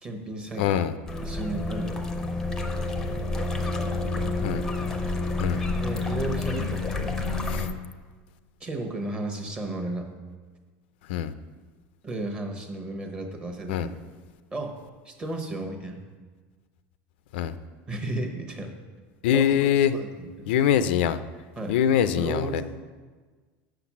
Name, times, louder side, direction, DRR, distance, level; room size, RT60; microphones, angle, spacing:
voice 1, 0.0-0.8 1.2-2.0 4.1-4.4 5.8-7.2 8.6-10.1 12.0-13.9 14.5-14.8 15.0-16.0 17.9-18.7 19.3-20.5 21.6-21.8 22.1-22.6, right 2 dB, 15° right, 4 dB, 1.0 m, -34 dB
voice 2, 0.6-0.9 4.4-4.6 5.4-5.6 7.5-7.7 11.1-11.3 13.7-13.9 17.3-17.5 19.2-19.9 20.5-21.2 21.7-22.6, left 9 dB, 80° left, 12 dB, 0.4 m, -23 dB
sound 1, 1.1-7.7, left 3 dB, 10° left, 0.6 m, -29 dB
6.6 x 5.9 x 7.2 m, 1.4 s
supercardioid pair, 160°, 6 cm